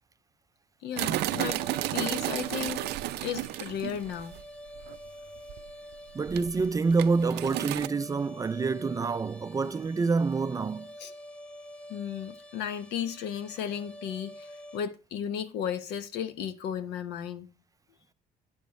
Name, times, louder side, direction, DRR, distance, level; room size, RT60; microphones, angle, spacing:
voice 1, 0.8-1.6 1.9-2.9 3.2-4.4 11.0-11.1 11.9-17.5, left 8 dB, 85° left, 1.1 m, -34 dB
sound 1, 1.0-4.4 4.8-5.0 5.5-5.9 6.3-7.9, right 15 dB, 80° right, 0.5 m, -32 dB
sound 2, 1.3-14.8, left 1 dB, 5° left, 1.0 m, -48 dB
voice 2, 6.1-10.9, right 4 dB, 20° right, 0.3 m, -27 dB
8.9 x 6.8 x 3.2 m
cardioid pair, 110°, 17 cm